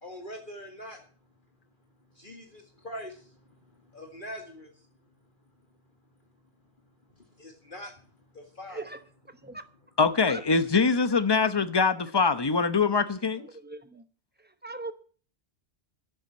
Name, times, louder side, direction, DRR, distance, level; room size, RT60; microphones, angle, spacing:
voice 1, 0.0-1.0 2.2-3.4 3.9-4.7 7.4-7.9 8.3-8.8, equal, 45° left, 2.2 m, -42 dB
voice 2, 8.7-9.0 9.3-9.6 10.3-10.4 13.6-14.0 14.6-14.9, right 2 dB, 10° right, 0.9 m, -39 dB
voice 3, 10.0-13.4, left 4 dB, 25° left, 0.8 m, -23 dB
11.5 x 7.3 x 9.6 m
omnidirectional pair, 1.2 m